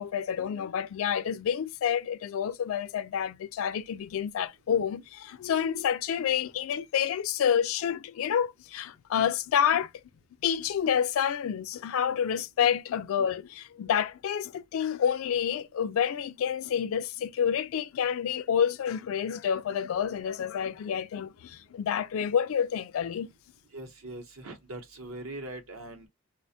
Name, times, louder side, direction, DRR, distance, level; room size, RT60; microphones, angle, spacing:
voice 1, 0.0-9.9 10.4-23.3, left 8 dB, 70° left, 0.3 m, -28 dB
voice 2, 23.7-26.1, right 1 dB, 75° right, 0.7 m, -41 dB
2.4 x 2.1 x 2.6 m
head